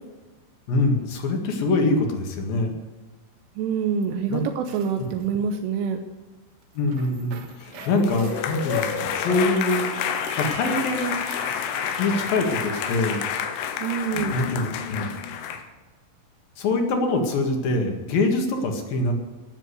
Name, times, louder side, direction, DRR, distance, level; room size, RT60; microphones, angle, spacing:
voice 1, 0.7-2.7 4.3-4.4 6.7-9.9 10.4-11.2 12.0-13.2 14.3-15.1 16.6-19.2, left 2 dB, 55° left, 3 dB, 3.2 m, -24 dB
voice 2, 3.6-6.0 13.8-14.4, right 6 dB, 85° right, 6 dB, 3.4 m, -26 dB
sound 1, 4.6-5.3 6.6-13.6, right 6 dB, 65° right, 3.0 m, -43 dB
sound 2, 7.7-15.6, left 8 dB, 90° left, 3.6 m, -29 dB
18.5 x 7.5 x 8.2 m, 1.3 s
omnidirectional pair, 5.5 m